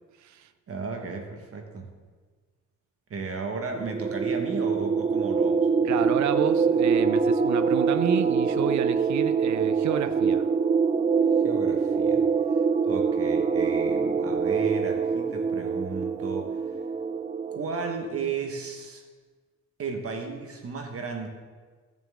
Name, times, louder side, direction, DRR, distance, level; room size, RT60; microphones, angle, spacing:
voice 1, 0.7-1.9 3.1-6.0 11.4-12.3 12.9-16.7 17.5-19.0 19.8-21.3, right 4 dB, 50° right, 1.4 m, -34 dB
sound 1, 3.7-18.1, right 5 dB, 25° right, 0.4 m, -24 dB
voice 2, 5.8-10.5, right 9 dB, 65° right, 0.7 m, -29 dB
15.0 x 7.2 x 3.6 m
cardioid pair, 120°, 31 cm